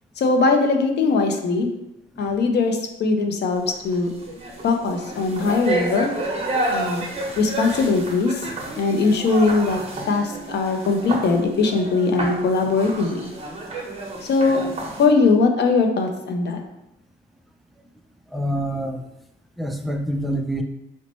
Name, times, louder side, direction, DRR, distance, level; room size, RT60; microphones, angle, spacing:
voice 1, 0.2-1.7 2.2-4.1 4.6-6.1 6.7-7.0 7.4-8.5 8.8-9.8 10.1-13.2 14.2-14.6 15.0-16.6, left 4 dB, 60° left, 4 dB, 0.5 m, -20 dB
sound 1, 3.7-4.0 4.2-15.0, right 2 dB, 30° right, 0.9 m, -30 dB
voice 2, 18.3-19.1 19.6-20.6, equal, ahead, 4 dB, 0.3 m, -26 dB
3.0 x 2.1 x 4.0 m, 0.89 s
cardioid pair, 90°, 20 cm